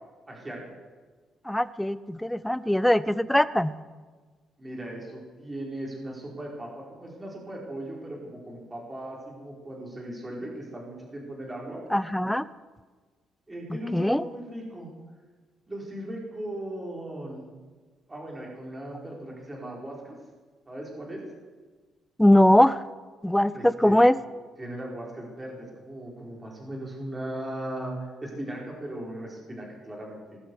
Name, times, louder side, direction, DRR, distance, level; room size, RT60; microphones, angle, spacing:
voice 1, 0.3-0.6 4.6-11.8 13.5-14.9 15.7-17.5 18.1-20.2 20.7-21.2 23.5-24.0 24.6-30.4, right 1 dB, 15° right, -3 dB, 4.5 m, -38 dB
voice 2, 1.5-3.7 11.9-12.4 13.7-14.2 22.2-22.8 23.2-24.2, left 1 dB, 5° left, 15 dB, 0.5 m, -21 dB
19.0 x 15.5 x 4.7 m, 1.4 s
cardioid pair, 130°, 0 cm